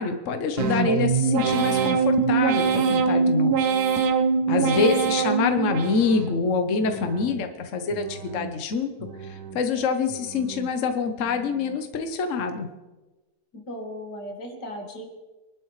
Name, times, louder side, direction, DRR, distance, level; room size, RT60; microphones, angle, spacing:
voice 1, 0.0-3.6 4.5-8.9 9.2-12.7, left 4 dB, 50° left, 6 dB, 1.3 m, -25 dB
sound 1, 0.6-6.4 6.8-7.5 7.9-8.6 9.0-9.7 10.1-10.7 11.2-11.7, right 5 dB, 70° right, 1.6 m, -24 dB
voice 2, 4.6-4.9 13.5-15.1, equal, 80° left, 3 dB, 2.5 m, -36 dB
25.0 x 12.0 x 3.2 m, 1.2 s
omnidirectional pair, 1.8 m